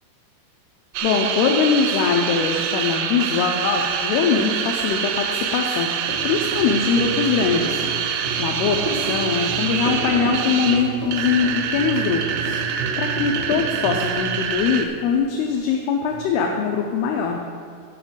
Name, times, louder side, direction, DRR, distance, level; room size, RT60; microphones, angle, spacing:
sound 1, 0.9-14.9, right 7 dB, 85° right, 2.9 m, -26 dB
voice 1, 1.0-5.9 6.2-7.8 8.4-12.6 13.0-17.4, left 6 dB, 80° left, 1 dB, 2.7 m, -22 dB
sound 2, 6.0-15.5 16.1-16.2, right 3 dB, 70° right, 1.1 m, -31 dB
9.6 x 6.0 x 7.7 m, 2.1 s
omnidirectional pair, 4.9 m